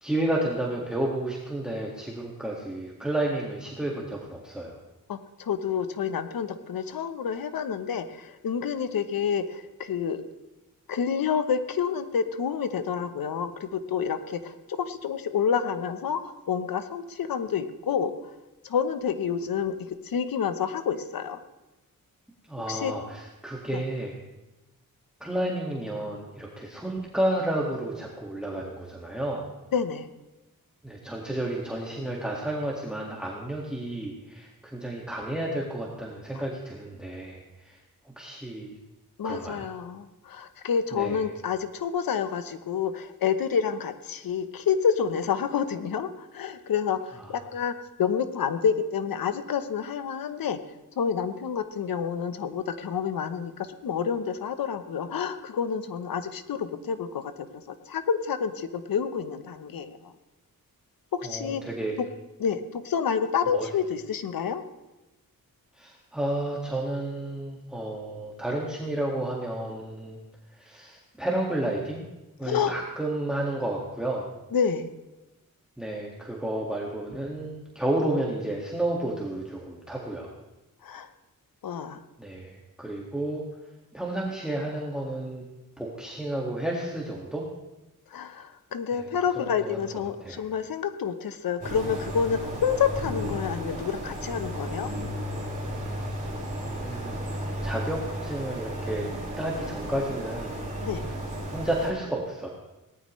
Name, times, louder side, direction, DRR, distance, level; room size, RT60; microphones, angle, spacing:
voice 1, 0.0-4.8 22.5-24.1 25.2-29.5 30.8-37.8 38.2-38.8 39.2-39.7 40.9-41.2 47.2-47.3 61.2-61.9 63.5-63.7 65.7-70.2 70.5-72.0 72.4-74.3 75.8-80.3 82.2-83.5 83.9-85.4 85.8-87.5 88.9-89.0 89.4-90.4 95.7-96.0 96.6-97.4 97.6-99.1 99.4-100.6 101.0-102.5, right 1 dB, ahead, -2 dB, 1.9 m, -31 dB
voice 2, 5.1-10.2 10.9-18.1 18.6-21.4 22.7-23.0 23.7-23.8 29.7-30.1 36.3-36.4 39.2-47.7 48.0-50.6 51.0-60.1 61.1-61.7 62.0-62.1 62.4-64.6 72.4-72.7 74.5-74.9 80.8-81.1 81.6-82.0 88.1-94.9 100.8-101.1, left 7 dB, 75° left, 11 dB, 1.0 m, -28 dB
sound 1, 91.6-101.9, equal, 20° right, 4.8 m, -34 dB
18.5 x 13.5 x 3.2 m, 1.1 s
wide cardioid pair, 100°, 35 cm